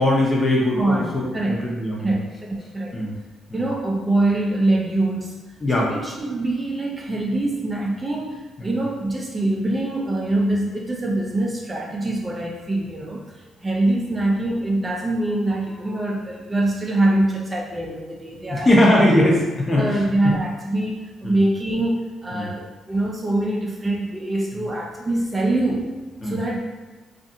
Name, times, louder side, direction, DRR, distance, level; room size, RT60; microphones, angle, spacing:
voice 1, 0.0-2.2 2.9-3.1 3.5-3.6 5.6-5.9 8.6-8.7 18.5-19.4 19.7-20.3 21.2-21.4 22.3-22.5 24.6-24.7 26.2-26.4, left 1 dB, 30° left, -3 dB, 0.7 m, -20 dB
voice 2, 0.8-1.6 2.0-3.0 3.5-5.4 5.7-18.7 19.7-26.6, right 1 dB, 25° right, -2 dB, 0.4 m, -24 dB
2.5 x 2.4 x 2.6 m, 1.3 s
cardioid pair, 90°, 0 cm